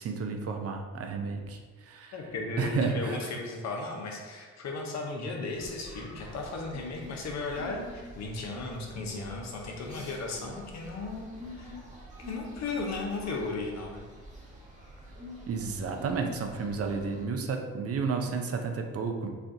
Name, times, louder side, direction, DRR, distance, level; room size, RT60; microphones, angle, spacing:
voice 1, 0.0-2.2 2.6-3.2 15.5-19.3, right 5 dB, 50° right, 4 dB, 0.6 m, -32 dB
voice 2, 2.1-11.7 12.3-14.0, left 3 dB, 65° left, 1 dB, 0.8 m, -35 dB
sound 1, 5.5-17.2, equal, 25° right, 1.2 m, -46 dB
5.7 x 2.4 x 2.7 m, 1.5 s
cardioid pair, 90°, 30 cm